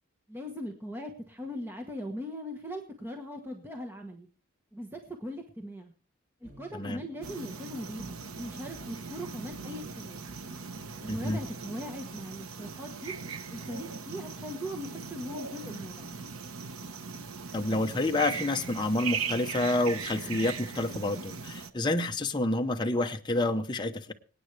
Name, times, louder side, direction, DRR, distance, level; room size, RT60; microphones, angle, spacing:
voice 1, 0.3-4.3 4.7-5.9 6.4-10.2 11.0-13.1 13.5-16.3, equal, 10° right, 3 dB, 1.1 m, -40 dB
sound 1, 6.4-11.5, equal, 35° right, 2.4 m, -52 dB
sound 2, 7.2-21.7, right 5 dB, 90° right, 1.0 m, -39 dB
voice 2, 11.1-11.4 17.5-24.1, left 2 dB, 20° left, 5 dB, 0.8 m, -29 dB
26.0 x 9.2 x 3.3 m, 0.41 s
head